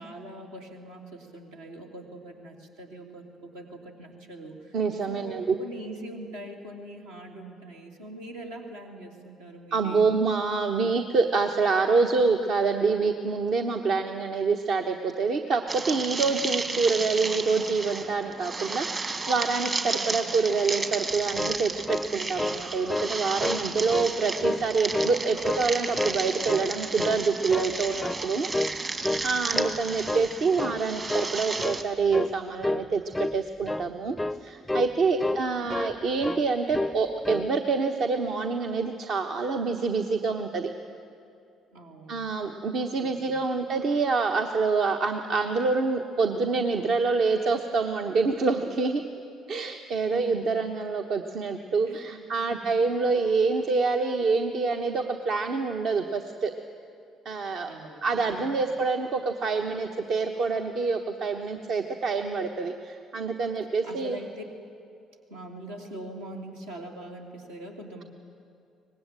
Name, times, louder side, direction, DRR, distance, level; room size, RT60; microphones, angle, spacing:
voice 1, 0.0-4.8 5.1-10.2 19.9-20.3 29.2-30.1 35.2-35.8 41.7-42.3 43.0-43.4 50.0-50.4 51.8-52.6 57.5-58.7 63.8-64.4 65.3-68.0, right 1 dB, 75° right, -1 dB, 3.1 m, -43 dB
voice 2, 4.7-5.5 9.7-28.5 29.2-33.0 33.3-34.2 34.4-40.7 42.1-49.0 49.5-56.5 57.2-57.7 58.0-64.2, right 4 dB, 50° right, 4 dB, 1.1 m, -26 dB
sound 1, 15.7-31.8, right 3 dB, 35° right, 2.2 m, -33 dB
sound 2, 21.1-22.6 22.9-23.1 23.4-24.1 24.4-25.2 25.4-26.2 26.5-26.7 27.0-27.8 28.0-28.3 28.5-28.8 29.0-29.8 30.0-30.3 30.6-30.8 31.1-31.3 31.6-31.8 32.1-32.3 32.6-32.9 33.1-33.4 33.6-33.9 34.2-34.4 34.7-34.9 35.2-36.0 36.2-36.4 36.7-37.0 37.2-37.5, left 2 dB, 10° left, 0.5 m, -30 dB
24.0 x 20.0 x 9.0 m, 2.5 s
figure-of-eight pair, 50°, 0 cm